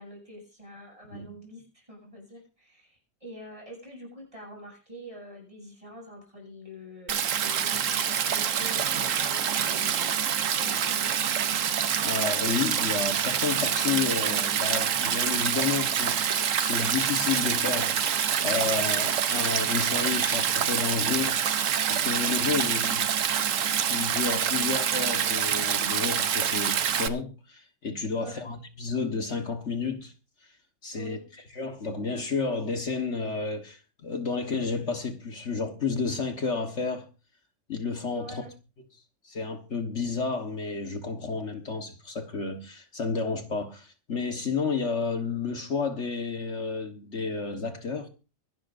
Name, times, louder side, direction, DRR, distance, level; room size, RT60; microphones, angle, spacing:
voice 1, 0.0-11.1 22.2-22.4 28.1-28.5 30.9-31.3 38.1-38.5, equal, 25° right, 7.9 m, -45 dB
Stream, 7.1-27.1, right 8 dB, 75° right, 1.3 m, -26 dB
voice 2, 12.0-16.3 16.6-18.0 18.4-21.4 21.9-23.1 23.9-30.1 30.4-30.5 30.8-31.2 31.5-37.1 37.7-38.4 39.2-48.1, left 4 dB, 60° left, 1.7 m, -31 dB
24.5 x 12.0 x 2.6 m
omnidirectional pair, 1.4 m